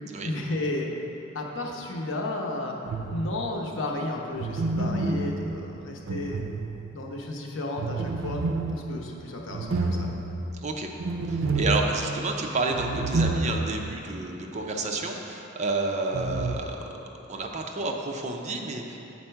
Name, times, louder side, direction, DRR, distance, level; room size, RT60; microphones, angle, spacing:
voice 1, 0.2-0.9 1.3-2.8 3.1-6.4 6.9-8.4 8.7-10.1, left 2 dB, 75° left, 0 dB, 0.9 m, -33 dB
sound 1, 2.8-3.6 4.4-7.1 7.8-14.0 14.3-14.4 16.1-16.5, right 3 dB, 85° right, 0.4 m, -29 dB
voice 2, 11.3-16.8 17.3-19.0, right 2 dB, 35° right, 2 dB, 0.6 m, -30 dB
7.5 x 4.3 x 5.7 m, 2.9 s
head